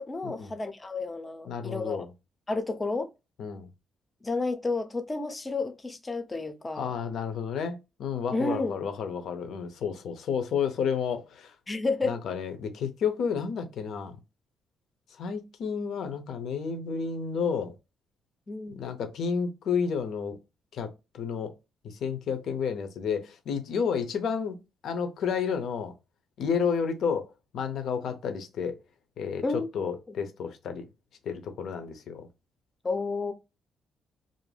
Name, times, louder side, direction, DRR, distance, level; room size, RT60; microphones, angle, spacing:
voice 1, 0.0-2.0 2.5-3.1 4.2-6.9 8.3-8.7 11.7-12.2 18.5-18.8 29.4-29.7 30.1-30.2 32.8-33.3, left 3 dB, 25° left, 0.5 m, -31 dB
voice 2, 1.5-2.1 3.4-3.7 6.7-11.5 12.0-14.2 15.2-17.7 18.8-20.4 20.7-21.5 21.8-24.6 24.8-25.9 26.4-27.3 27.5-28.8 29.2-30.9 31.2-32.3, left 6 dB, 70° left, 0.6 m, -31 dB
2.5 x 2.0 x 3.2 m
cardioid pair, 90°, 0 cm